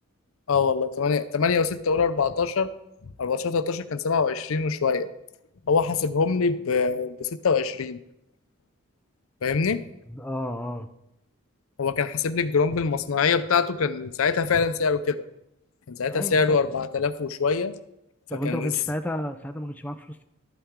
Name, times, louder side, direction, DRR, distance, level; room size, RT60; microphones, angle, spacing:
voice 1, 0.5-2.7 3.2-5.1 5.7-8.0 9.4-9.8 11.8-15.2 15.9-17.8 18.4-18.7, left 5 dB, 75° left, 13 dB, 0.5 m, -24 dB
voice 2, 10.1-10.9 16.1-16.6 18.3-20.2, left 1 dB, 5° left, 7 dB, 0.5 m, -32 dB
12.5 x 8.7 x 3.7 m, 0.83 s
head